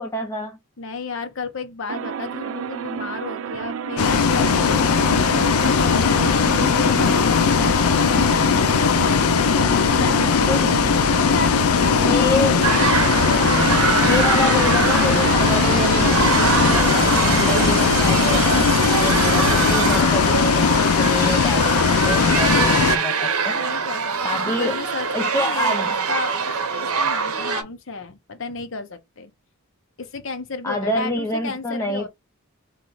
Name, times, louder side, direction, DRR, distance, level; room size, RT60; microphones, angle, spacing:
voice 1, 0.0-0.6 10.4-10.7 12.0-12.7 14.0-18.7 19.0-23.6 24.2-24.8 25.1-25.9 30.6-32.1, left 2 dB, 15° left, 0.5 m, -27 dB
voice 2, 0.8-7.6 8.5-10.5 11.1-12.6 23.5-25.8 26.1-26.6 26.8-29.3 30.0-32.1, left 4 dB, 60° left, 0.8 m, -33 dB
sound 1, 1.9-20.0, right 8 dB, 60° right, 0.3 m, -28 dB
Bus, 4.0-23.0, left 6 dB, 85° left, 0.5 m, -19 dB
sound 2, 12.6-27.6, right 5 dB, 85° right, 0.7 m, -24 dB
3.1 x 3.0 x 3.9 m
head